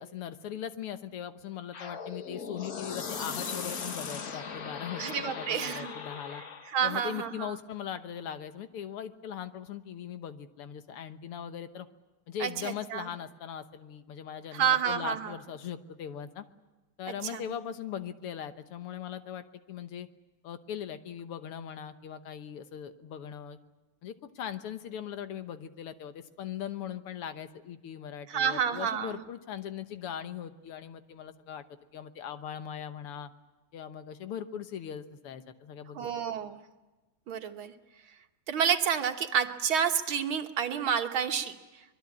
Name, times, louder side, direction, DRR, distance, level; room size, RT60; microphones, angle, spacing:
voice 1, 0.0-6.4 6.8-11.9 12.3-16.4 17.0-20.1 20.4-23.6 24.0-33.3 33.7-36.1, left 9 dB, 85° left, 10 dB, 2.1 m, -40 dB
sound 1, 1.7-6.8, left 6 dB, 45° left, 1.6 m, -38 dB
voice 2, 5.0-5.9 6.7-7.5 12.4-13.1 14.5-15.4 17.2-17.4 28.3-29.1 36.0-36.6 37.3-37.7 38.5-41.6, right 8 dB, 70° right, 7 dB, 2.1 m, -29 dB
25.0 x 21.5 x 8.6 m, 1.1 s
omnidirectional pair, 2.4 m